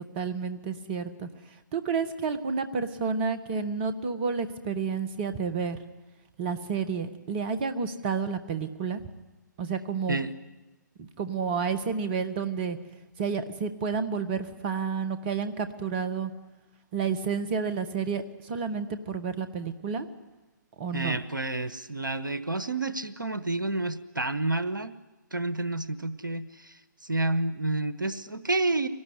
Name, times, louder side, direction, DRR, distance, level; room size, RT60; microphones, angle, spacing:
voice 1, 0.1-1.3 1.7-5.8 6.4-9.0 9.6-10.2 11.0-12.8 13.2-16.3 16.9-20.1 20.8-21.2, right 5 dB, 30° right, 11 dB, 1.6 m, -30 dB
voice 2, 20.9-24.9 25.3-28.9, right 2 dB, 85° right, 13 dB, 1.2 m, -29 dB
24.0 x 19.0 x 9.8 m, 1.1 s
figure-of-eight pair, 130°, 10 cm